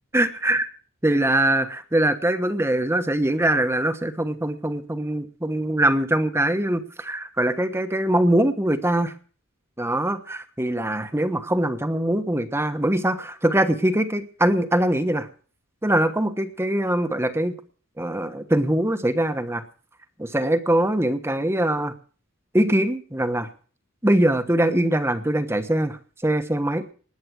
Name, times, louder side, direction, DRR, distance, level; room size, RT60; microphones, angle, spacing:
voice 1, 0.1-0.7 1.0-9.1 9.8-15.3 15.8-17.5 18.0-19.6 20.2-21.9 22.5-23.5 24.0-26.8, right 1 dB, 10° right, 9 dB, 1.2 m, -22 dB
20.0 x 8.5 x 6.3 m, 0.41 s
head